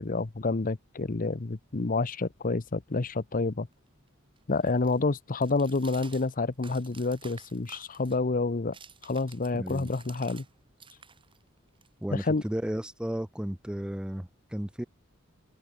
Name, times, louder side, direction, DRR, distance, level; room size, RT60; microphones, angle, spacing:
voice 1, 0.0-3.7 4.5-8.8 9.0-10.4 12.1-12.4, left 3 dB, 40° left, 0.8 m, -28 dB
sound 1, 3.1-10.5 10.8-13.0, right 6 dB, 25° right, 3.1 m, -53 dB
voice 2, 9.5-9.9 12.0-14.8, equal, 5° right, 0.5 m, -34 dB
open air
head